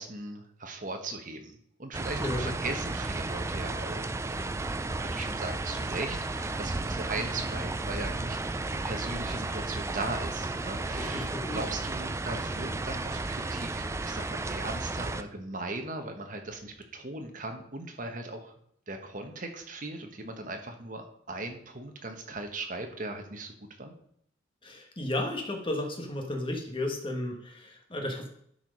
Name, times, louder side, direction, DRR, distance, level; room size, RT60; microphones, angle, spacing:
voice 1, 0.0-4.1 4.9-8.4 8.7-18.5 18.9-23.5 23.8-23.9, right 2 dB, 40° right, 5 dB, 1.2 m, -38 dB
sound 1, 1.9-15.2, right 2 dB, 15° right, 0.3 m, -33 dB
voice 2, 11.1-11.6 24.6-28.3, left 1 dB, 25° left, 3 dB, 1.5 m, -33 dB
11.5 x 4.8 x 5.4 m, 0.68 s
head